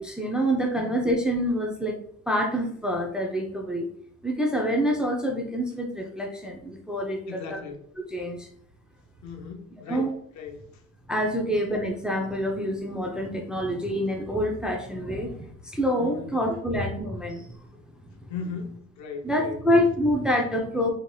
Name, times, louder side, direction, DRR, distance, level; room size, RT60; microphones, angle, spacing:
voice 1, 0.0-2.0 2.3-3.9 4.2-7.6 8.1-8.5 9.9-10.1 11.1-17.6 18.1-18.3 19.2-20.9, equal, 5° right, 1 dB, 0.4 m, -26 dB
voice 2, 7.3-7.8 9.2-10.8 11.4-11.6 16.0-16.3 18.3-19.6, left 5 dB, 70° left, 4 dB, 0.6 m, -38 dB
3.0 x 2.8 x 2.2 m, 0.65 s
cardioid pair, 90°, 30 cm